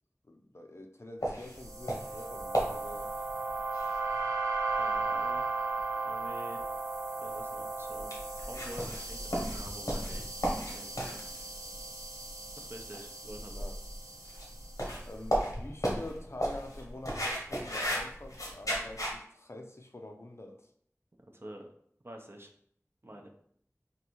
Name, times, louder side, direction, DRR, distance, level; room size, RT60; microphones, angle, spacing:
voice 1, 0.3-3.1 10.9-11.2 13.5-13.8 15.1-20.7 23.0-23.2, left 1 dB, 50° left, 4 dB, 0.5 m, -46 dB
sound 1, 1.2-19.1, equal, 85° left, 1.1 m, -36 dB
sound 2, 1.5-14.9, right 3 dB, 85° right, 0.8 m, -36 dB
voice 2, 4.8-5.5 6.0-6.7 7.2-10.3 10.6-11.4 12.6-13.6 21.3-21.7 22.0-22.5 23.0-23.3, right 1 dB, 45° right, 3 dB, 0.6 m, -48 dB
3.4 x 2.6 x 4.4 m, 0.64 s
wide cardioid pair, 40°, 6 cm